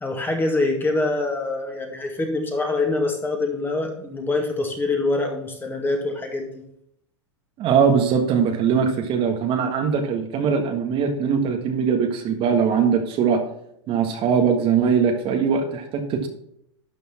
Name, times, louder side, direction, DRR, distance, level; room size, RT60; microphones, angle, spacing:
voice 1, 0.0-6.5, left 2 dB, 15° left, 3 dB, 2.1 m, -24 dB
voice 2, 7.6-13.4 13.9-16.3, right 6 dB, 35° right, 4 dB, 1.5 m, -21 dB
12.0 x 5.4 x 4.3 m, 0.72 s
hypercardioid pair, 105°, 15 cm